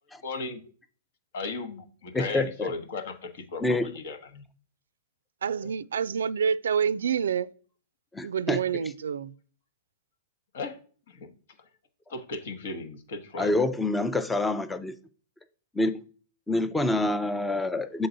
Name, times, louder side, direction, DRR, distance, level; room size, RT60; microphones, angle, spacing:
voice 1, 0.2-0.6 1.3-4.4 5.6-5.7 10.5-10.8 11.1-11.3 12.1-13.5, left 3 dB, 65° left, 1.1 m, -36 dB
voice 2, 2.1-2.7 3.6-3.9 8.1-8.6 13.4-14.9 15.7-16.0 16.5-18.1, left 2 dB, 5° left, 0.4 m, -27 dB
voice 3, 5.4-7.5 8.2-9.3, right 7 dB, 85° right, 0.3 m, -27 dB
6.7 x 3.9 x 3.9 m
hypercardioid pair, 130°, 0 cm